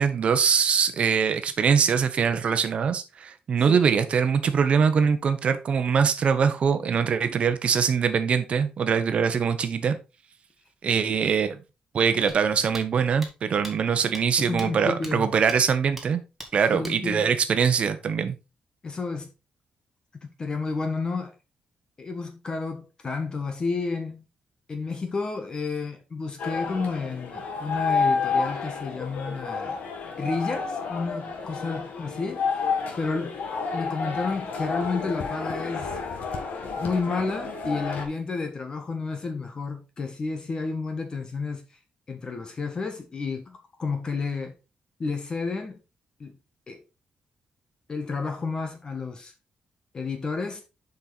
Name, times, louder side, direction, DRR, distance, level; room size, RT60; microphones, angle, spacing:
voice 1, 0.0-10.0 10.8-11.6 11.9-16.2 16.5-18.4, right 6 dB, 50° right, 1.1 m, -23 dB
sound 1, 12.3-12.4 12.7-12.9 13.2-13.3 13.6-13.7 14.1-14.2 14.6-14.7 15.0-15.1 15.5-15.6 16.0-16.1 16.4-16.5 16.8-17.0, right 1 dB, 5° right, 1.8 m, -39 dB
voice 2, 14.4-15.3 16.7-17.3 18.8-19.3 20.2-21.3 22.0-24.2 24.7-29.8 30.2-32.4 33.0-33.3 33.7-36.0 36.6-41.6 42.1-44.5 45.0-45.8 46.2-46.4 46.7-46.8 47.9-49.3 49.9-50.6, left 4 dB, 30° left, 1.3 m, -31 dB
sound 2, 26.4-38.0, left 5 dB, 75° left, 2.0 m, -30 dB
7.4 x 5.5 x 4.0 m
wide cardioid pair, 150°, 3 cm